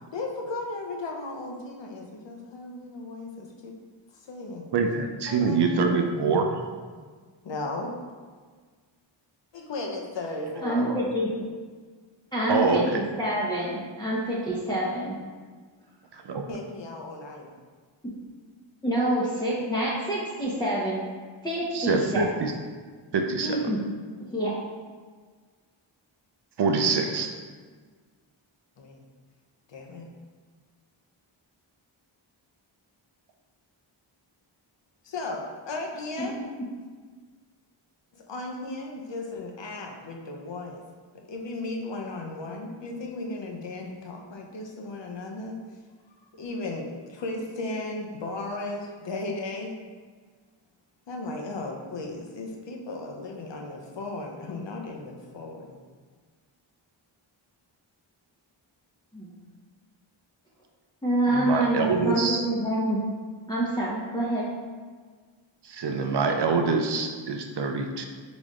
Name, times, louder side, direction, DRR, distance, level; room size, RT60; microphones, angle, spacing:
voice 1, 0.1-3.7 4.1-4.6 5.3-6.1 7.4-8.0 9.5-10.8 16.5-17.5 28.8-29.0 29.7-30.1 35.0-36.4 38.1-40.8 41.1-45.6 46.1-49.8 51.1-55.8, left 2 dB, 60° left, 1 dB, 0.8 m, -36 dB
voice 2, 4.7-6.6 10.7-11.0 12.5-12.9 16.1-16.4 21.7-22.5 23.1-23.6 26.6-27.4 61.3-62.4 65.6-68.1, right 4 dB, 55° right, 4 dB, 0.6 m, -25 dB
voice 3, 10.6-11.3 12.3-15.2 18.8-21.0 21.4-22.3 23.4-23.8 24.3-24.5 36.2-36.4 59.1-59.3 61.0-63.0 63.5-64.5, right 1 dB, 10° left, -7 dB, 0.9 m, -27 dB
4.1 x 3.4 x 3.6 m, 1.5 s
cardioid pair, 55°, 48 cm